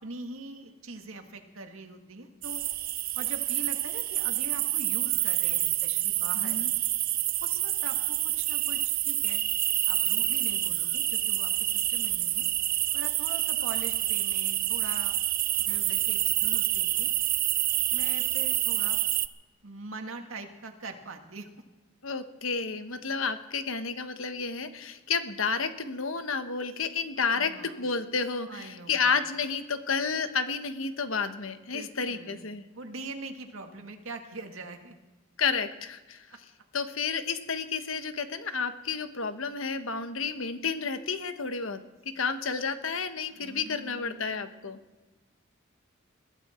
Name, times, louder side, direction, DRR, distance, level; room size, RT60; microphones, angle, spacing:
voice 1, 0.0-2.6 3.1-6.6 7.4-9.4 9.9-12.5 12.9-15.2 15.6-17.1 17.9-19.0 19.6-21.5 27.3-27.8 28.5-29.2 31.6-34.9 36.3-36.4 43.3-44.7, right 2 dB, 75° right, 5 dB, 2.0 m, -43 dB
sound 1, 2.4-19.3, right 15 dB, 45° right, 0.5 m, -28 dB
voice 2, 6.4-6.7 22.0-27.5 27.8-32.6 35.4-36.2 36.7-41.8 42.1-44.8, left 5 dB, 75° left, 9 dB, 1.2 m, -31 dB
21.5 x 15.0 x 4.4 m, 1.2 s
head